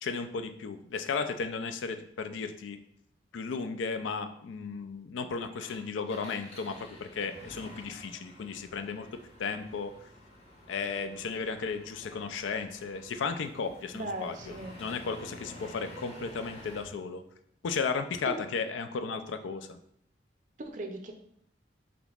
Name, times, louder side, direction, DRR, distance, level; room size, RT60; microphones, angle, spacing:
voice 1, 0.0-2.8 3.3-9.1 9.4-9.9 10.7-17.2 17.6-19.8, left 5 dB, 80° left, 9 dB, 0.4 m, -34 dB
Engine, 5.5-17.0, left 1 dB, 30° left, 0.7 m, -50 dB
voice 2, 13.9-14.7 18.3-18.4 20.6-21.1, right 1 dB, 40° right, 4 dB, 0.4 m, -38 dB
5.1 x 2.9 x 2.3 m, 0.71 s
head